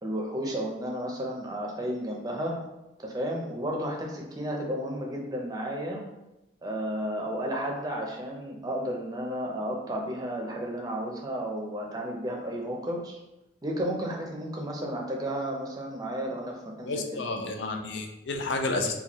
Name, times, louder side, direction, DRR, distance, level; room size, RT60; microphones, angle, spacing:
voice 1, 0.0-2.5 3.0-6.0 6.6-13.2 13.6-17.2, equal, 20° right, 0 dB, 0.6 m, -32 dB
voice 2, 16.8-18.9, left 2 dB, 75° left, 4 dB, 0.5 m, -30 dB
4.2 x 2.3 x 3.0 m, 0.94 s
head